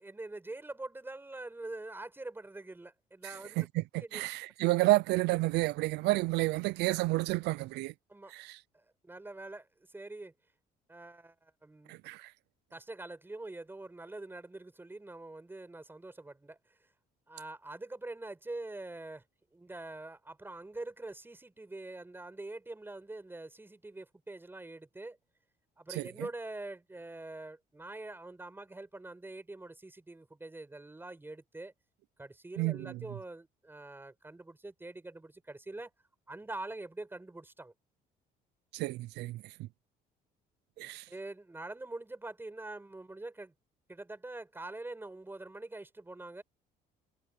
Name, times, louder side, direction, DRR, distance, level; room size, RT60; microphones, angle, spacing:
voice 1, 0.0-3.7 4.0-4.2 8.1-8.3 8.7-10.3 10.9-12.0 12.7-16.6 17.3-19.2 19.5-25.2 25.8-31.7 32.2-35.9 36.3-37.7 41.1-43.5 43.9-46.4, right 2 dB, 10° right, 6.0 m, -44 dB
voice 2, 4.1-7.9 8.3-8.6 11.9-12.3 26.0-26.1 32.6-32.9 38.7-39.7 40.8-41.0, right 19 dB, 85° right, 0.6 m, -30 dB
cardioid pair, 110°, 17 cm